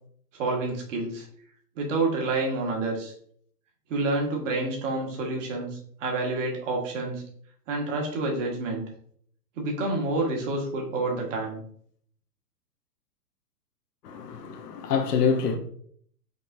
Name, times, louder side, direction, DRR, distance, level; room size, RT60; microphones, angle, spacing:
voice 1, 0.3-1.3 1.8-3.1 3.9-7.2 7.7-8.8 9.6-11.6, right 2 dB, 50° right, 1.6 m, -28 dB
voice 2, 14.0-15.6, left 6 dB, 75° left, 1.0 m, -26 dB
5.2 x 3.7 x 2.7 m
hypercardioid pair, 155°, 48 cm